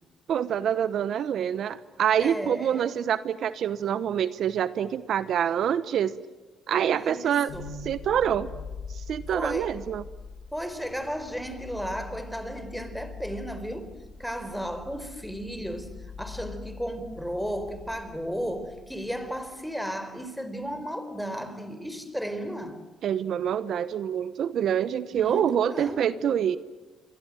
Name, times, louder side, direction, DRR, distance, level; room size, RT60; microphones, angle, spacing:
voice 1, 0.3-6.1 6.7-7.5 7.8-8.5 8.9-10.0 23.0-26.6, right 9 dB, 70° right, 0.9 m, -26 dB
voice 2, 2.2-2.9 6.9-7.7 9.3-9.8 10.5-13.9 14.2-22.8 25.1-26.1, equal, ahead, 4.3 m, -34 dB
sound 1, 7.5-19.5, left 4 dB, 85° left, 5.9 m, -43 dB
28.0 x 23.5 x 9.0 m
cardioid pair, 90°, 0 cm